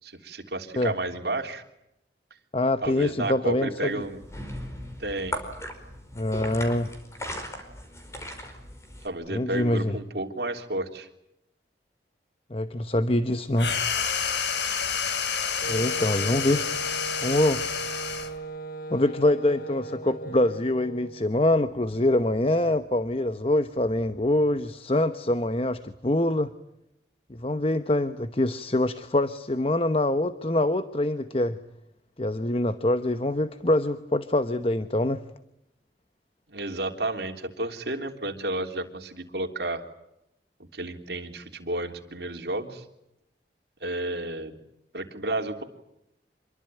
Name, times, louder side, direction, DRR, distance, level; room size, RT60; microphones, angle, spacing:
voice 1, 0.0-1.6 2.8-4.2 5.0-5.4 9.0-11.1 36.5-39.8 40.7-42.8 43.8-44.5 44.9-45.6, right 2 dB, 65° right, 5 dB, 3.4 m, -32 dB
voice 2, 2.5-4.0 6.1-6.9 9.3-10.0 12.5-13.7 15.7-16.6 17.2-17.6 18.9-26.5 27.3-31.6 32.2-35.2, left 1 dB, 30° left, 11 dB, 0.9 m, -25 dB
sound 1, 4.0-9.1, left 1 dB, 15° left, 4.8 m, -38 dB
sound 2, 13.6-18.4, left 6 dB, 80° left, 3.0 m, -29 dB
Wind instrument woodwind instrument, 15.6-21.3, right 2 dB, 50° left, 1.5 m, -37 dB
27.0 x 22.5 x 9.2 m, 0.84 s
head